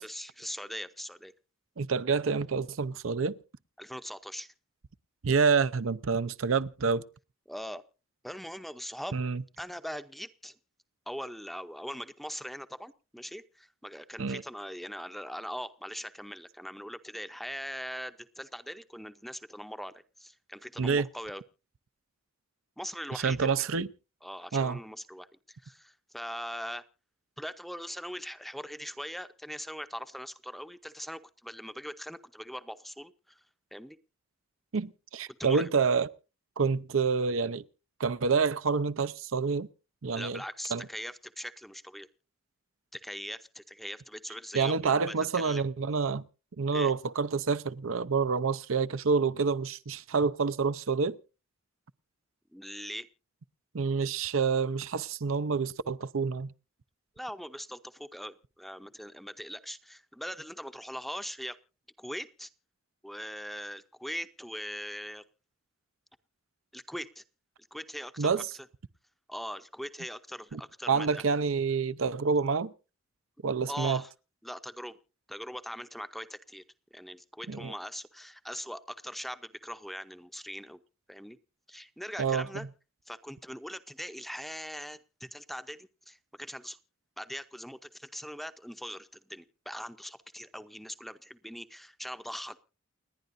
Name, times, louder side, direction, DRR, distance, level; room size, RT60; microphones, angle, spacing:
voice 1, 0.0-1.3 3.8-4.5 7.5-7.8 8.2-9.2 9.6-10.6 11.1-21.4 22.8-23.6 24.2-26.8 27.4-33.4 33.7-34.0 35.4-35.7 40.1-42.1 42.9-45.7 46.7-46.9 52.5-53.1 57.2-61.6 62.0-62.5 63.0-65.2 66.7-67.2 67.7-68.4 69.3-71.2 73.7-74.1 74.4-75.0 75.3-76.6 76.9-80.8 81.1-81.4 81.7-82.7 83.1-86.8 87.2-92.6, equal, ahead, 0.7 m, -41 dB
voice 2, 1.8-3.4 5.2-7.0 9.1-9.4 14.2-14.4 20.8-21.1 23.1-23.9 24.5-24.8 34.7-36.1 36.6-37.6 38.0-39.7 40.0-40.4 40.7-40.9 44.5-46.2 46.6-51.2 53.7-56.5 68.2-68.5 70.5-70.6 70.9-72.7 73.4-74.0 77.5-77.7 82.2-82.5, right 5 dB, 70° right, 0.6 m, -28 dB
29.5 x 10.0 x 2.6 m
head